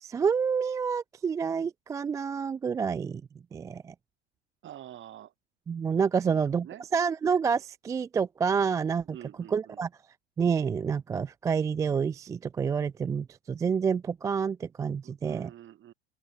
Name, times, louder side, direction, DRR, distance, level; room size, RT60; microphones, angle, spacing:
voice 1, 0.0-3.2 3.5-3.9 5.7-6.7 6.9-9.0 9.5-9.9 10.4-15.5, right 6 dB, 10° right, 0.3 m, -28 dB
voice 2, 4.6-5.3 6.2-6.8 9.0-9.8 15.0-15.9, right 11 dB, 35° right, 4.7 m, -47 dB
open air
hypercardioid pair, 90°, 34 cm